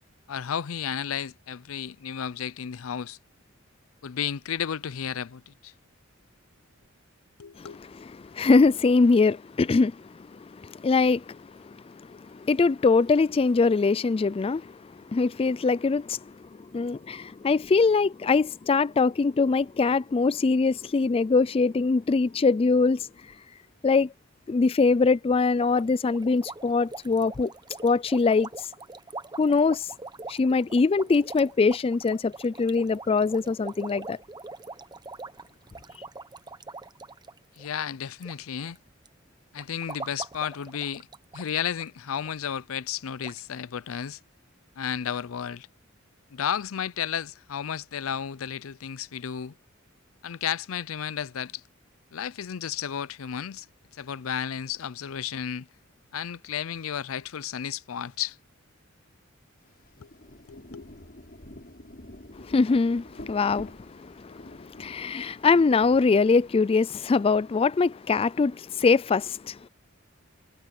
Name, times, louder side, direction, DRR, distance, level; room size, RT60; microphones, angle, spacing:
voice 1, 0.3-3.2 4.0-5.7 7.4-7.8 37.6-38.8 39.5-41.1 41.3-44.2 44.8-45.7 46.3-49.5 50.2-51.6 52.1-53.7 53.9-55.7 56.1-58.4 60.0-60.1 60.5-60.9, left 8 dB, 85° left, 0.5 m, -33 dB
voice 2, 7.6-14.8 15.1-16.3 16.7-23.1 23.8-24.1 24.5-27.5 27.8-28.7 29.4-29.9 30.3-34.2 62.4-69.6, left 4 dB, 25° left, 0.3 m, -23 dB
sound 1, 25.6-38.4 38.6-39.1 39.6-41.5 41.8-41.9 42.2-42.3 42.9-43.0 43.2-43.4, right 3 dB, 20° right, 0.9 m, -43 dB
Rain, 59.6-66.8, left 1 dB, 45° left, 6.9 m, -47 dB
head